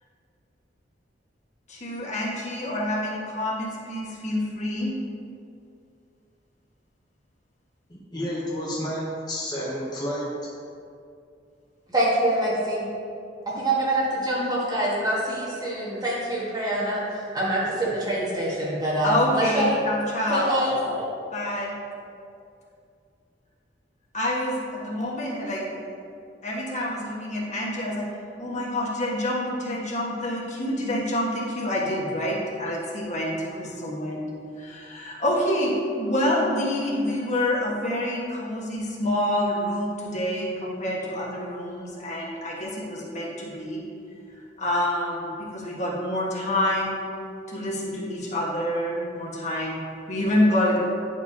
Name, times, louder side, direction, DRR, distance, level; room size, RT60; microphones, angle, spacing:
voice 1, 1.7-4.9 19.0-20.5 21.3-21.7 24.1-25.9 26.4-28.1 28.4-34.2 34.6-43.8 44.6-47.0 47.5-49.8 50.1-50.8, left 1 dB, 40° left, -4 dB, 1.4 m, -27 dB
voice 2, 7.9-10.3, equal, 25° left, -6 dB, 0.8 m, -30 dB
voice 3, 11.9-12.9 13.6-17.0 17.3-19.7 20.3-21.0, right 1 dB, 20° right, -7 dB, 1.5 m, -25 dB
10.0 x 4.6 x 2.8 m, 2.4 s
head